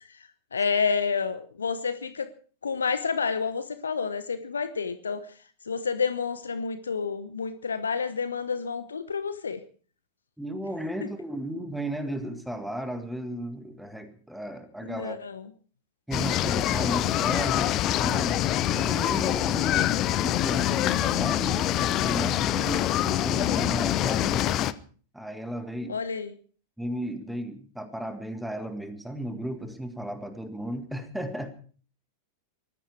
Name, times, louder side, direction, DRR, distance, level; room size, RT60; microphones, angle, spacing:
voice 1, 0.5-2.3 2.6-5.3 5.7-9.6 14.8-15.4 25.9-26.3, left 5 dB, 70° left, 12 dB, 1.0 m, -29 dB
voice 2, 10.4-15.2 16.1-24.5 25.1-26.0 26.8-31.5, right 1 dB, ahead, 8 dB, 1.9 m, -34 dB
sound 1, 16.1-24.7, left 12 dB, 35° left, 0.8 m, -25 dB
19.5 x 14.5 x 4.7 m, 0.43 s
figure-of-eight pair, 90°, 0 cm